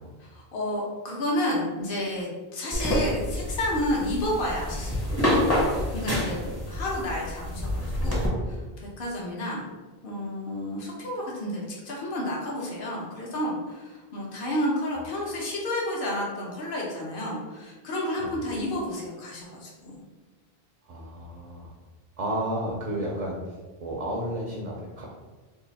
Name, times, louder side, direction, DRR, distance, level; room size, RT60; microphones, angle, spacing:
voice 1, 0.2-5.4 5.7-8.6 9.0-9.6 10.0-20.0, left 1 dB, 60° left, -4 dB, 1.0 m, -31 dB
sound 1, 2.7-8.3, left 1 dB, 15° left, 0.7 m, -27 dB
voice 2, 20.9-21.7 22.2-23.4 23.8-25.0, right 1 dB, 45° right, -3 dB, 0.5 m, -32 dB
2.7 x 2.4 x 3.9 m, 1.3 s
omnidirectional pair, 1.0 m